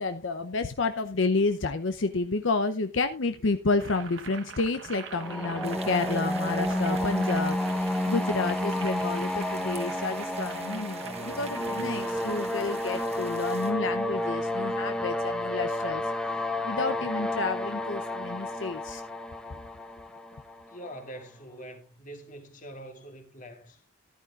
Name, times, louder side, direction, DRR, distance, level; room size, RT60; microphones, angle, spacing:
voice 1, 0.0-16.0 16.6-19.0 19.5-19.6, left 3 dB, 75° left, 0.7 m, -30 dB
Boiling, 3.7-13.1, right 5 dB, 70° right, 1.2 m, -45 dB
sound 1, 5.1-20.9, left 1 dB, 5° left, 0.9 m, -31 dB
sound 2, 5.6-13.7, right 5 dB, 35° right, 1.3 m, -47 dB
voice 2, 20.7-23.8, right 1 dB, 40° left, 2.0 m, -44 dB
14.0 x 11.0 x 2.4 m
head